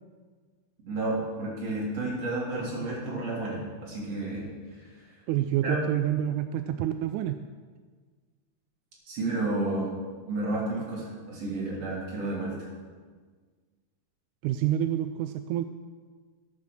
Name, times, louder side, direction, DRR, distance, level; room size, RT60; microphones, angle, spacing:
voice 1, 0.9-4.5 5.6-5.8 9.1-9.9 10.3-12.7, right 2 dB, 50° right, -5 dB, 4.4 m, -31 dB
voice 2, 5.3-7.4 14.4-15.6, right 12 dB, 80° right, 9 dB, 1.8 m, -28 dB
13.5 x 8.6 x 6.7 m, 1.5 s
omnidirectional pair, 3.8 m